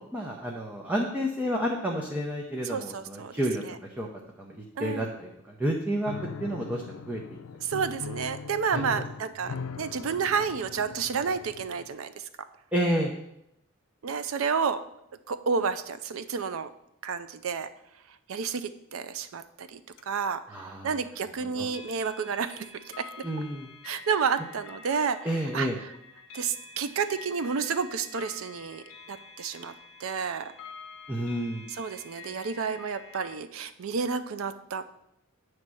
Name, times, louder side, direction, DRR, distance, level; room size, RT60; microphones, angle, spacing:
voice 1, 0.1-3.6 4.0-6.1 6.4-7.4 8.7-9.0 9.4-9.6 12.7-13.1 20.5-21.0 21.4-21.7 23.2-23.7 25.2-25.8 31.1-31.7, equal, 10° right, -1 dB, 0.6 m, -30 dB
voice 2, 2.7-3.3 4.8-5.1 7.6-12.1 14.0-14.8 15.3-16.7 17.0-17.7 18.3-19.8 20.1-20.4 20.8-22.7 23.0-23.2 23.9-25.2 25.5-25.7 26.3-29.7 30.0-30.5 31.8-34.8, right 6 dB, 80° right, 12 dB, 0.5 m, -30 dB
Piano, 6.0-12.0, left 5 dB, 85° left, 0.4 m, -40 dB
sound 1, 20.0-20.1 21.7-33.4, left 4 dB, 65° left, 0.8 m, -48 dB
8.2 x 3.2 x 6.1 m, 0.81 s
head